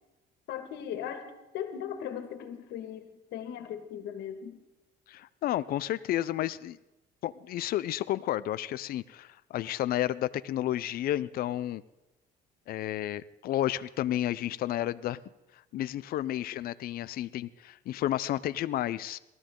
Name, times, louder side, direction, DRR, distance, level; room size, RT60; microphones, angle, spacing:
voice 1, 0.5-4.6, left 9 dB, 85° left, 7 dB, 1.9 m, -38 dB
voice 2, 5.1-6.8 7.2-11.8 12.7-15.2 15.7-19.2, left 13 dB, 60° left, 15 dB, 0.6 m, -31 dB
18.5 x 14.0 x 3.8 m, 0.97 s
cardioid pair, 110°, 17 cm